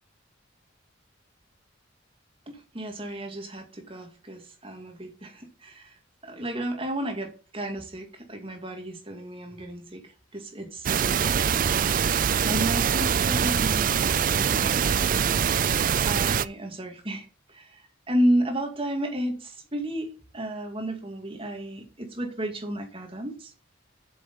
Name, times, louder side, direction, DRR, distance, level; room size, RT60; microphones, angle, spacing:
voice 1, 2.5-5.9 6.2-10.0 10.3-15.2 15.6-17.3 17.5-17.8 18.1-23.5, right 1 dB, 30° right, 4 dB, 2.3 m, -32 dB
sound 1, 10.9-16.5, right 7 dB, 45° right, 0.4 m, -23 dB
7.8 x 7.0 x 7.1 m, 0.35 s
head